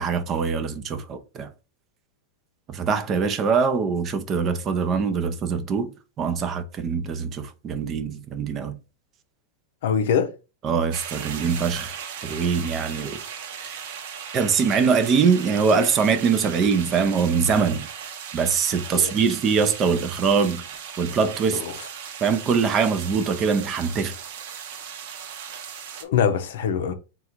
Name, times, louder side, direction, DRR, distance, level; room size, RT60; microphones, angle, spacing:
voice 1, 0.0-1.5 2.7-8.8 10.6-13.2 13.6-13.8 14.3-17.9 18.3-20.6 21.0-21.6 22.2-24.2, right 5 dB, 25° right, 0.5 m, -23 dB
voice 2, 9.8-10.3 18.9-19.1 21.5-21.7 26.0-26.9, left 7 dB, 65° left, 0.6 m, -23 dB
sound 1, 10.9-26.0, right 8 dB, 55° right, 0.8 m, -37 dB
3.7 x 2.4 x 4.4 m
supercardioid pair, 160°, 0 cm